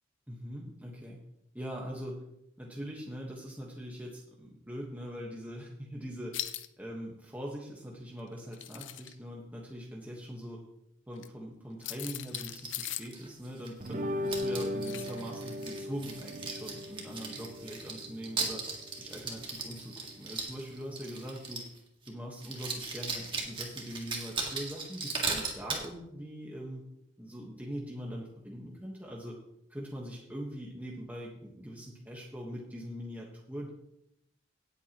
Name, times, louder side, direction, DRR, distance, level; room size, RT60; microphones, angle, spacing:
voice 1, 0.3-1.2 1.5-2.2 2.6-6.3 6.8-10.6 11.1-18.6 19.0-21.6 22.0-26.8 27.2-29.4 29.7-33.7, equal, 10° right, -3 dB, 1.4 m, -42 dB
sound 1, 6.3-6.7 8.4-9.1 11.2-11.3 11.8-13.2 14.8-15.2 15.6-15.7, left 13 dB, 75° left, 0.6 m, -39 dB
sound 2, 12.3-13.9 14.3-21.8 22.1-22.2 22.4-25.9, right 4 dB, 25° right, 2.0 m, -38 dB
sound 3, 13.8-21.5, left 1 dB, 40° right, 0.7 m, -39 dB
17.5 x 8.2 x 3.0 m, 0.80 s
head